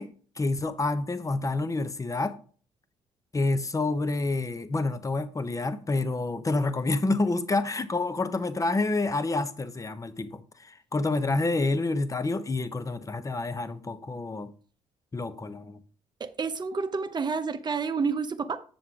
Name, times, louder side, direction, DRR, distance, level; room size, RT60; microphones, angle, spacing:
voice 1, 0.0-2.4 3.3-14.5 15.1-15.8, left 2 dB, 25° left, 0.9 m, -28 dB
voice 2, 16.2-18.6, right 5 dB, 30° right, 0.8 m, -29 dB
7.2 x 7.1 x 3.6 m
supercardioid pair, 60°, 14 cm